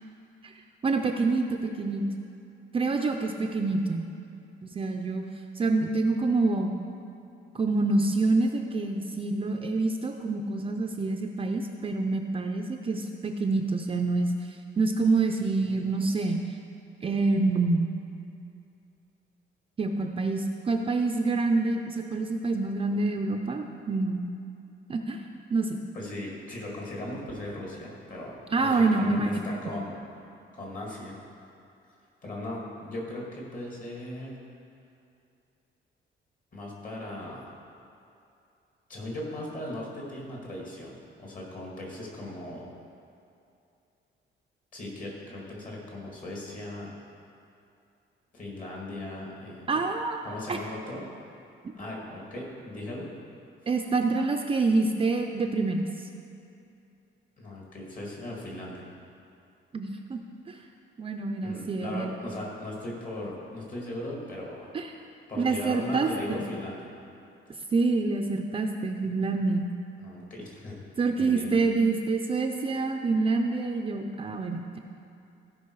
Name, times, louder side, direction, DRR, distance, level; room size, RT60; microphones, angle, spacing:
voice 1, 0.8-2.0 2.7-4.1 4.6-5.2 5.6-6.7 7.5-16.4 17.0-17.9 19.8-24.2 24.9-25.2 25.5-25.8 28.5-29.3 49.7-50.2 50.5-50.6 53.7-55.9 59.7-60.2 60.5-60.6 61.0-62.1 64.7-64.9 65.4-66.1 67.7-69.7 71.0-74.8, right 3 dB, 25° right, 4 dB, 0.4 m, -26 dB
voice 2, 25.9-30.0 30.5-31.2 32.2-34.4 36.5-37.5 38.9-42.7 44.7-46.9 48.3-49.8 50.2-51.1 51.8-53.1 57.4-58.9 61.4-64.7 65.3-66.9 70.0-70.8 71.2-71.5, left 1 dB, 40° left, -3 dB, 2.3 m, -38 dB
15.5 x 5.3 x 4.7 m, 2.7 s
cardioid pair, 165°, 20 cm